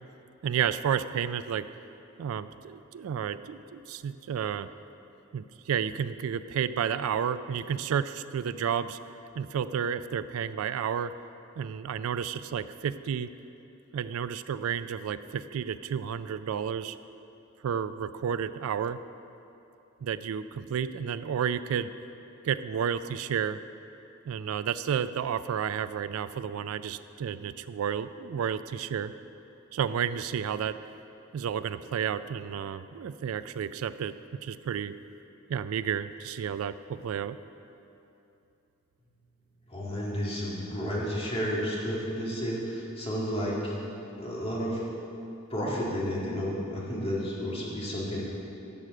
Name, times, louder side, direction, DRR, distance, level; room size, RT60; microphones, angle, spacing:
voice 1, 0.4-1.7 2.2-4.7 5.3-9.0 9.4-11.1 11.6-13.3 13.9-17.0 17.6-19.0 20.0-21.9 22.4-23.6 24.3-29.1 29.7-30.8 31.3-34.1 34.4-34.9 35.5-37.4, right 8 dB, 75° right, 13 dB, 0.3 m, -31 dB
voice 2, 39.7-43.8 44.1-44.8 45.5-48.2, equal, 30° left, -5 dB, 1.9 m, -31 dB
11.0 x 4.9 x 7.5 m, 2.8 s
head